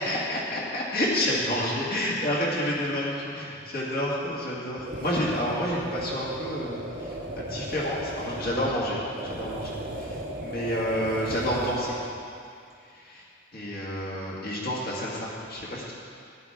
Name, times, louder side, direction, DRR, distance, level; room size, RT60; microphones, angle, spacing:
voice 1, 0.0-12.0 12.8-13.3 13.5-15.9, equal, 55° left, -6 dB, 2.1 m, -29 dB
sound 1, 4.8-12.1, right 1 dB, 45° right, 1.1 m, -36 dB
15.0 x 11.0 x 3.6 m, 2.4 s
head